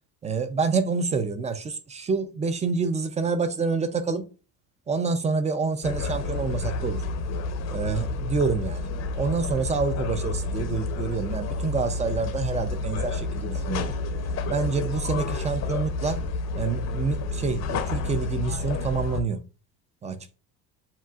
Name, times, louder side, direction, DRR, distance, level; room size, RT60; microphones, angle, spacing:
voice 1, 0.2-4.2 4.9-7.0 7.7-8.9 9.1-13.9 14.5-16.2 16.5-19.4 20.0-20.4, right 4 dB, 20° right, 9 dB, 0.4 m, -27 dB
sound 1, 5.8-19.2, left 3 dB, 45° left, 0.7 m, -30 dB
7.2 x 2.4 x 2.3 m, 0.34 s
cardioid pair, 145°, 37 cm